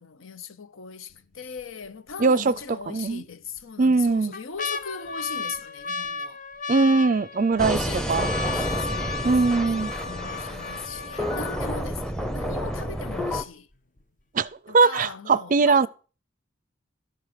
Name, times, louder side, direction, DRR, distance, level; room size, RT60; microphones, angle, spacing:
voice 1, 0.0-6.4 7.5-13.7 14.7-15.9, left 6 dB, 75° left, 0.8 m, -39 dB
sound 1, 1.1-1.6 2.1-2.2 3.1-3.6 4.1-12.0 12.7-12.8 13.0-13.5 14.0-14.1, left 4 dB, 40° left, 0.7 m, -34 dB
voice 2, 2.2-2.5 2.9-3.2 3.8-4.3 6.7-8.3 9.2-9.9 14.3-15.9, right 4 dB, 40° right, 0.5 m, -21 dB
sound 2, 7.6-13.4, equal, 5° left, 0.7 m, -30 dB
12.5 x 6.6 x 7.5 m
head